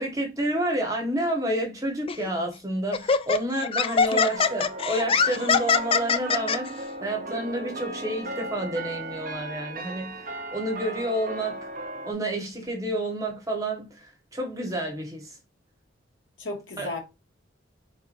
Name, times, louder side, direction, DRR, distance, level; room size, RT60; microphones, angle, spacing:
voice 1, 0.0-11.7 12.0-15.4 16.8-16.9, right 1 dB, 20° right, 1.6 m, -29 dB
Laughter, 2.1-2.3 2.9-6.6, left 5 dB, 30° left, 0.4 m, -23 dB
sound 1, 4.4-12.1, right 2 dB, 45° right, 0.9 m, -36 dB
voice 2, 16.4-17.0, left 2 dB, 85° left, 2.3 m, -33 dB
4.9 x 4.0 x 2.7 m
head